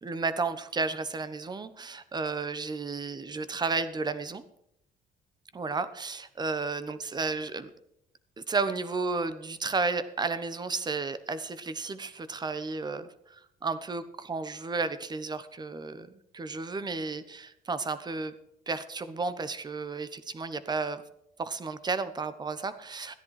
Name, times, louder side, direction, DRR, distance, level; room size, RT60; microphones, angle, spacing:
voice 1, 0.0-4.4 5.5-7.7 8.4-18.3 18.7-21.0 21.4-23.1, right 4 dB, 25° right, 13 dB, 1.0 m, -33 dB
14.0 x 10.5 x 4.8 m, 0.78 s
cardioid pair, 110°, 17 cm